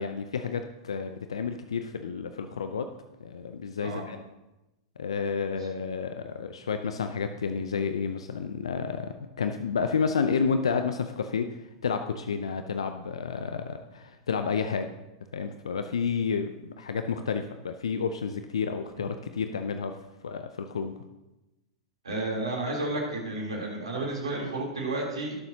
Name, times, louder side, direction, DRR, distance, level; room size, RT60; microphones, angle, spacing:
voice 1, 0.0-2.9 3.2-4.2 5.0-14.9 15.3-20.0 20.2-21.0, left 5 dB, 80° left, 8 dB, 0.5 m, -30 dB
voice 2, 22.0-25.4, right 2 dB, 85° right, -2 dB, 3.4 m, -31 dB
18.0 x 7.0 x 2.8 m, 0.99 s
hypercardioid pair, 100°, 3 cm